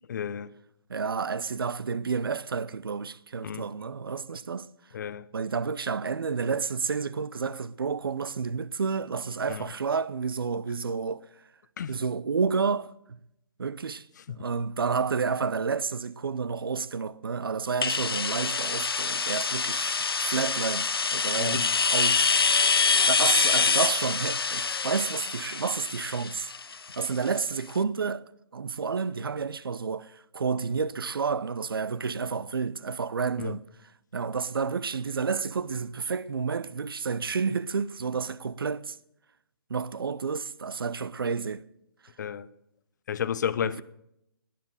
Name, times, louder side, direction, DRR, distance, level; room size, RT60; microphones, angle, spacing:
voice 1, 0.1-0.5 3.4-3.6 4.9-5.2 9.5-9.7 11.8-11.9 14.3-14.4 21.4-21.7 33.4-33.6 42.2-42.5 43.1-43.8, left 8 dB, 50° left, 0.9 m, -32 dB
voice 2, 0.9-4.7 5.3-11.2 11.9-12.9 13.6-22.7 23.1-26.5 27.0-28.2 28.5-33.6 34.1-39.0 39.7-41.7 43.6-43.8, right 5 dB, 70° right, 0.7 m, -30 dB
sound 1, 17.8-27.4, left 5 dB, 75° left, 0.9 m, -26 dB
19.0 x 10.5 x 6.4 m
figure-of-eight pair, 135°, 13 cm